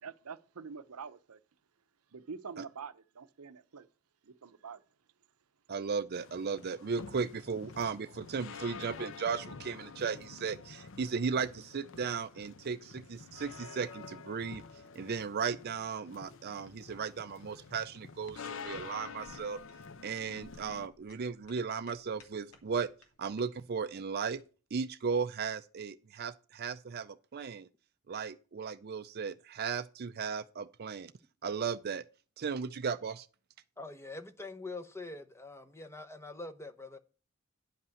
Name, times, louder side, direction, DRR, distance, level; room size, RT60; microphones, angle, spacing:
voice 1, 0.0-1.4 2.1-3.9 4.2-4.8, right 5 dB, 85° right, 0.7 m, -46 dB
voice 2, 5.7-14.6 15.0-19.6 20.0-22.9 23.2-24.4 24.7-27.7 28.1-31.1 31.4-32.0 32.4-33.3, right 5 dB, 45° right, 0.4 m, -36 dB
sound 1, 6.1-20.9, left 5 dB, 60° left, 0.7 m, -48 dB
sound 2, 18.3-24.5, left 2 dB, 80° left, 2.6 m, -63 dB
voice 3, 33.8-37.0, left 2 dB, 10° left, 0.8 m, -44 dB
10.5 x 5.5 x 7.0 m
head